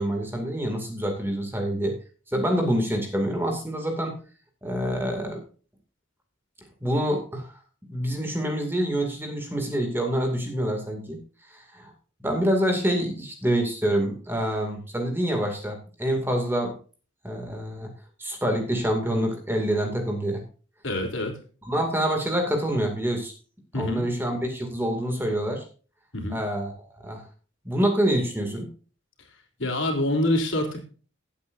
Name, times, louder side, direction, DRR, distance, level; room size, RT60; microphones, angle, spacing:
voice 1, 0.0-2.0 2.3-4.2 4.6-5.4 6.8-7.5 7.8-11.2 11.5-11.9 12.2-16.7 17.2-17.9 18.2-20.4 21.6-23.3 23.7-25.7 26.3-27.2 27.6-28.7, equal, 10° right, 3 dB, 2.3 m, -26 dB
voice 2, 20.8-21.4 23.7-24.0 26.1-26.4 29.6-30.8, left 1 dB, 70° left, 2 dB, 3.5 m, -26 dB
16.5 x 8.5 x 2.6 m, 0.38 s
head